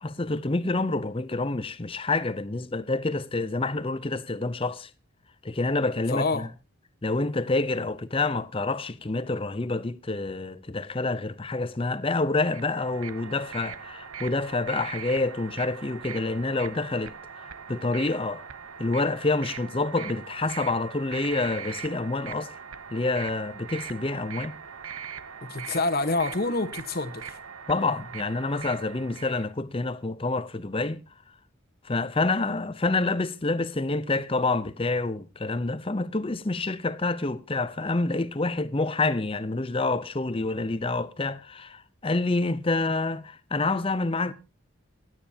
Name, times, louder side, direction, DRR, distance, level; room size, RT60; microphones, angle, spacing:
voice 1, 0.0-4.9 5.4-6.5 7.0-17.1 17.7-18.4 18.8-22.5 22.9-24.5 27.7-31.0 31.8-44.3, left 3 dB, 25° left, 0.6 m, -27 dB
voice 2, 6.1-6.5 25.5-27.4, left 3 dB, 45° left, 1.2 m, -27 dB
sound 1, 12.4-29.5, right 7 dB, 90° right, 0.9 m, -41 dB
27.0 x 9.2 x 2.8 m
head